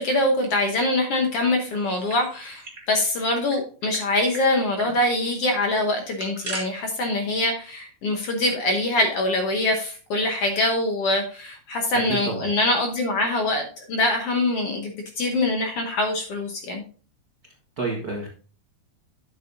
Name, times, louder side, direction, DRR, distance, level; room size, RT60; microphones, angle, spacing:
voice 1, 0.0-16.8, left 2 dB, 65° left, 3 dB, 1.6 m, -24 dB
sound 1, 1.8-2.9 3.1-3.2 3.5-4.0 4.3-4.4 4.8-5.0 5.9-6.6, right 3 dB, 20° right, 1.8 m, -37 dB
voice 2, 11.9-12.5 17.8-18.3, right 3 dB, 65° right, -1 dB, 0.9 m, -29 dB
10.5 x 7.5 x 2.7 m, 0.39 s
omnidirectional pair, 3.8 m